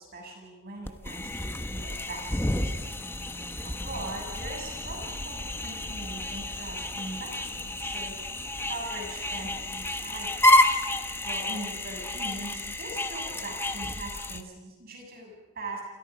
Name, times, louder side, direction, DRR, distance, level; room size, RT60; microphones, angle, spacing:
voice 1, 0.0-2.7 3.6-8.2 8.7-10.5 11.2-15.8, right 2 dB, 45° right, 0 dB, 7.5 m, -41 dB
sound 1, 0.9-14.4, left 1 dB, 10° left, 1.1 m, -29 dB
28.5 x 27.5 x 5.1 m, 1.2 s
head